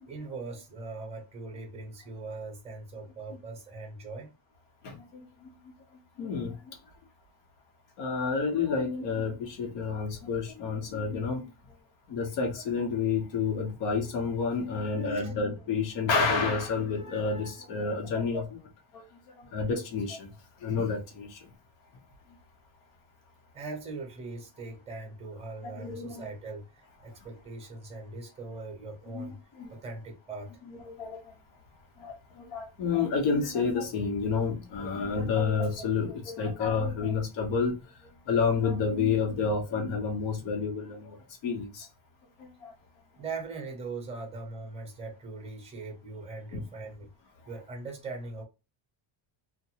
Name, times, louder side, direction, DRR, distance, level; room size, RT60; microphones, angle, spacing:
voice 1, 0.0-4.3 15.1-15.3 23.5-29.4 29.7-30.6 43.2-47.1 47.5-48.4, right 3 dB, 15° right, 0.6 m, -40 dB
voice 2, 4.8-5.2 6.2-6.8 8.0-11.4 12.1-19.0 19.4-20.3 20.6-21.5 25.6-26.3 29.1-29.3 29.6-29.8 30.9-31.2 32.0-37.8 38.3-41.2 41.4-41.9 42.6-42.7 46.5-46.7, left 5 dB, 65° left, 1.0 m, -29 dB
2.5 x 2.2 x 2.8 m
cardioid pair, 175°, 46 cm